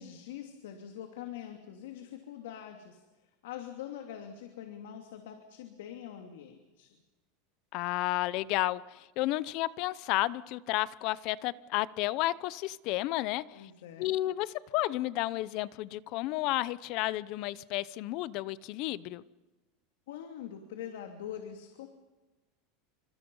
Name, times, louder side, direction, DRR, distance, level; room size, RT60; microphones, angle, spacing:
voice 1, 0.0-3.0 3.4-6.9 13.5-14.1 20.1-21.9, left 9 dB, 85° left, 4 dB, 2.8 m, -44 dB
voice 2, 7.7-13.7 14.0-19.2, left 17 dB, 45° left, 19 dB, 0.8 m, -32 dB
29.0 x 26.0 x 5.6 m, 1.2 s
supercardioid pair, 155°, 0 cm